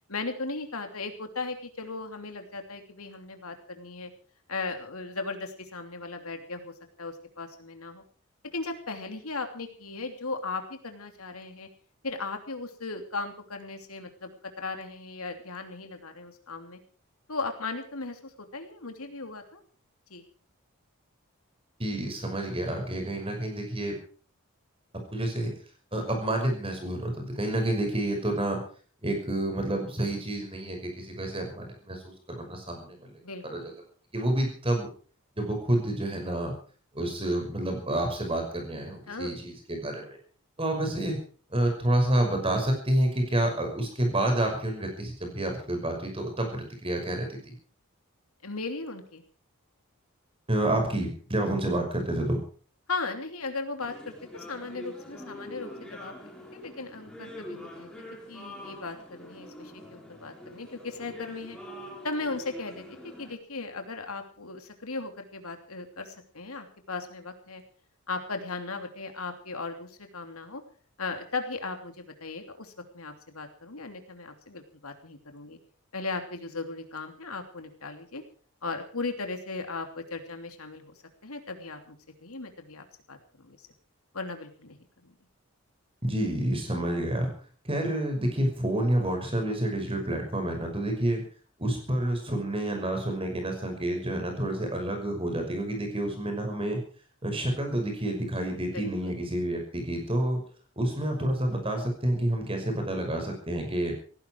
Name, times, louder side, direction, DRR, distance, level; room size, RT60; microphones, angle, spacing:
voice 1, 0.1-4.1 4.5-8.0 8.4-11.7 12.0-14.3 14.6-16.8 17.3-19.6 20.1-20.2 33.2-33.7 39.1-39.4 48.4-49.2 52.9-56.2 56.5-57.9 58.3-61.6 62.0-67.6 68.1-70.6 71.0-75.6 75.9-78.2 78.6-80.9 81.2-81.9 82.2-83.6 84.1-84.8 85.0-85.1 98.7-99.1, left 3 dB, 90° left, 6 dB, 3.0 m, -37 dB
voice 2, 21.8-24.0 25.1-25.5 25.9-28.6 29.0-33.2 33.5-33.7 34.1-34.9 35.4-36.5 36.9-40.2 40.6-41.2 41.5-47.6 50.5-52.4 86.0-87.3 87.6-91.2 91.6-96.8 97.2-100.4 100.8-103.9, right 1 dB, 25° right, 4 dB, 5.8 m, -29 dB
sound 1, 53.8-63.4, left 1 dB, 5° left, 3.7 m, -45 dB
17.5 x 16.0 x 4.7 m, 0.42 s
head